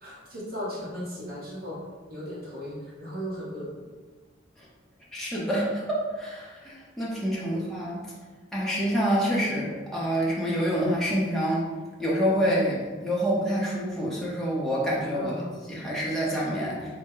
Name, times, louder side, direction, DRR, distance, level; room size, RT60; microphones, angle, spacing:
voice 1, 0.0-1.8 2.1-3.7 7.5-7.6 15.1-15.5, equal, 50° right, -7 dB, 1.3 m, -36 dB
voice 2, 5.1-8.0 8.5-11.7 12.0-15.3 15.7-17.0, equal, ahead, -7 dB, 0.7 m, -27 dB
4.1 x 2.1 x 3.7 m, 1.4 s
head